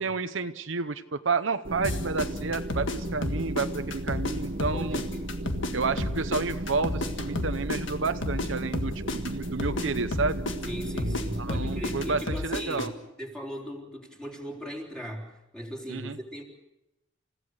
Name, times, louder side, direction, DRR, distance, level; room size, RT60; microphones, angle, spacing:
voice 1, 0.0-5.0 5.7-10.4 11.0-12.9 15.9-16.2, right 4 dB, 75° right, 10 dB, 0.8 m, -30 dB
sound 1, 1.6-12.2, right 1 dB, 50° right, 1.2 m, -35 dB
sound 2, 1.8-4.3 4.6-8.5 8.7-12.9, left 2 dB, 70° left, 1.8 m, -31 dB
voice 2, 4.7-5.3 10.6-12.9 13.2-16.4, equal, 5° left, 0 dB, 3.7 m, -38 dB
29.0 x 16.0 x 6.5 m, 0.96 s
head